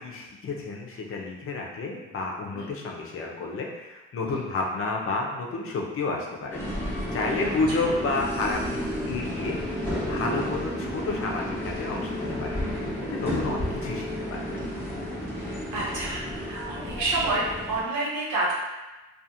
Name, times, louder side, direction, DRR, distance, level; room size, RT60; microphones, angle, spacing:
voice 1, 0.0-6.9 7.1-8.8 9.1-9.6 10.1-14.7, left 3 dB, 45° left, -1 dB, 0.6 m, -31 dB
sound 1, 6.5-17.8, left 1 dB, 5° left, 0.8 m, -32 dB
voice 2, 13.3-13.6 15.7-18.5, right 2 dB, 80° right, -5 dB, 0.9 m, -29 dB
2.4 x 2.4 x 2.8 m, 1.1 s
cardioid pair, 90°, 30 cm